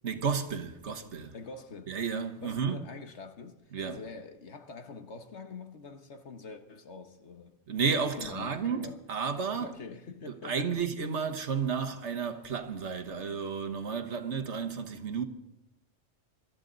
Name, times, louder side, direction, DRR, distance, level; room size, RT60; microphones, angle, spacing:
voice 1, 0.0-1.4 1.9-2.8 3.7-4.0 7.7-9.8 10.3-15.2, right 6 dB, 70° right, 1.5 m, -32 dB
voice 2, 1.3-1.9 2.4-7.5 8.1-9.0 9.5-10.8, left 4 dB, 70° left, 1.5 m, -45 dB
26.0 x 13.5 x 4.0 m
omnidirectional pair, 1.2 m